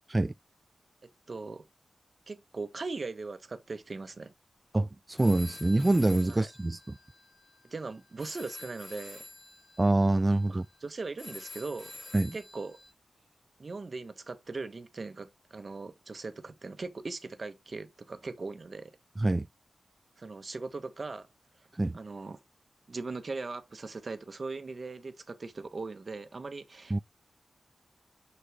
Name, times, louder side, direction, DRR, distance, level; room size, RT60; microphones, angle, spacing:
voice 1, 1.0-1.7 2.3-4.3 6.3-6.5 7.6-9.2 10.5-11.9 12.3-12.8 13.6-18.9 20.2-21.3 21.9-22.4 22.9-27.0, right 3 dB, 55° right, 1.4 m, -39 dB
voice 2, 4.7-7.0 9.8-10.7 12.1-12.4 19.2-19.5 21.7-21.9 26.9-27.0, right 2 dB, 25° right, 0.4 m, -26 dB
sound 1, 5.2-12.9, left 2 dB, 45° left, 3.2 m, -49 dB
6.6 x 5.7 x 3.6 m
cardioid pair, 55°, 0 cm